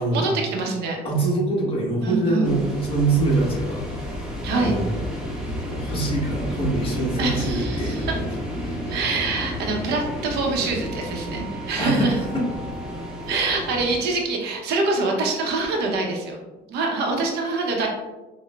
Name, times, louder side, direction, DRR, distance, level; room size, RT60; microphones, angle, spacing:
voice 1, 0.0-1.0 2.0-2.5 4.4-4.8 7.2-8.1 8.9-12.1 13.3-16.4 16.7-17.9, right 3 dB, 75° right, 1 dB, 0.8 m, -25 dB
voice 2, 1.0-3.8 4.6-4.9 5.7-8.1 8.6-9.0 11.8-12.4, right 2 dB, 35° left, -4 dB, 1.3 m, -24 dB
sound 1, 2.4-14.0, left 1 dB, 5° right, 0.9 m, -31 dB
5.6 x 2.1 x 2.3 m, 1.1 s
cardioid pair, 110°, 17 cm